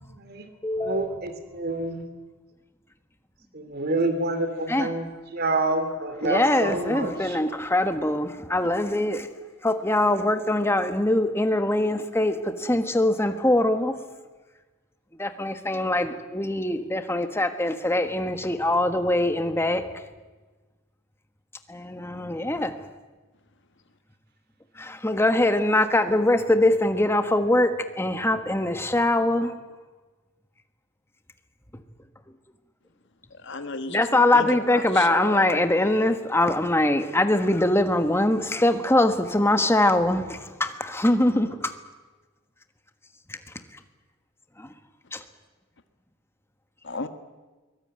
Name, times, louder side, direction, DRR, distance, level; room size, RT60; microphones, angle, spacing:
voice 1, 0.1-0.5 0.8-2.0 3.5-5.1 5.3-7.4, right 2 dB, 50° right, 2.8 m, -27 dB
voice 2, 0.6-1.2 4.7-4.9 6.2-9.3 9.6-13.9 15.2-19.8 21.7-22.7 24.8-29.5 33.9-41.7 44.6-44.7 45.1-45.2, left 1 dB, 10° left, 1.4 m, -23 dB
voice 3, 33.4-36.2 46.8-47.1, left 3 dB, 60° left, 1.4 m, -34 dB
23.0 x 18.0 x 8.9 m
head